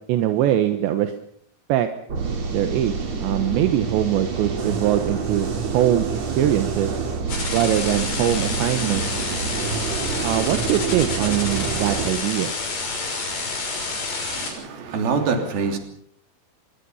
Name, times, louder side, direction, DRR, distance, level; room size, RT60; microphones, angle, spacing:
voice 1, 0.1-1.1 1.7-1.9 2.5-5.5 5.7-6.9 7.5-9.1 10.2-12.5, right 11 dB, 80° right, 8 dB, 3.5 m, -22 dB
sound 1, 2.1-12.1, right 5 dB, 40° right, 4.0 m, -27 dB
sound 2, 7.3-14.5, left 3 dB, 70° left, 8.4 m, -29 dB
voice 2, 14.3-15.8, right 5 dB, 60° right, 5 dB, 4.9 m, -25 dB
25.5 x 22.5 x 5.7 m, 0.65 s
omnidirectional pair, 5.1 m